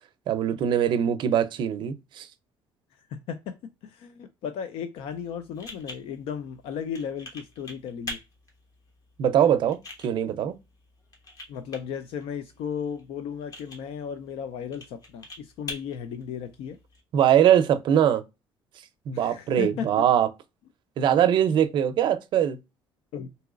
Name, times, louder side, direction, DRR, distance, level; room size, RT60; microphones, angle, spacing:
voice 1, 0.3-2.3 9.2-9.8 10.0-10.5 17.1-18.2 19.1-20.3 21.0-22.6, right 10 dB, 50° right, 0.5 m, -22 dB
voice 2, 2.9-3.6 3.8-8.2 11.5-16.8 19.1-20.0 23.1-23.3, left 7 dB, 75° left, 0.4 m, -35 dB
sound 1, 5.0-17.0, left 2 dB, 35° left, 1.1 m, -45 dB
3.8 x 2.8 x 2.4 m
cardioid pair, 155°, 10 cm